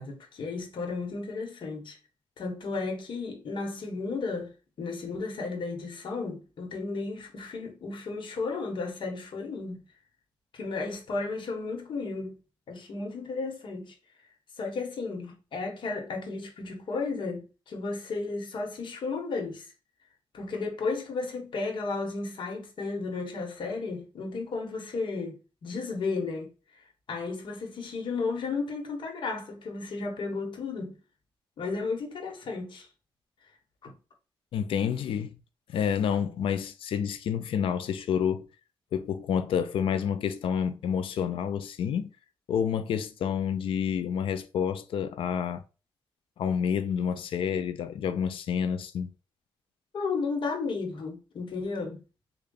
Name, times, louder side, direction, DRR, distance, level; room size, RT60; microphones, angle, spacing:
voice 1, 0.0-2.0 2.4-9.8 10.5-12.4 12.7-13.9 14.6-19.7 20.3-26.8 27.1-31.0 31.6-32.9 33.8-34.0 49.9-52.0, left 4 dB, 65° left, 1.1 m, -34 dB
voice 2, 34.5-35.4 35.7-38.5 38.9-42.1 42.5-45.6 46.4-49.1, left 8 dB, 85° left, 0.4 m, -29 dB
3.6 x 2.3 x 3.8 m
cardioid pair, 100°, 9 cm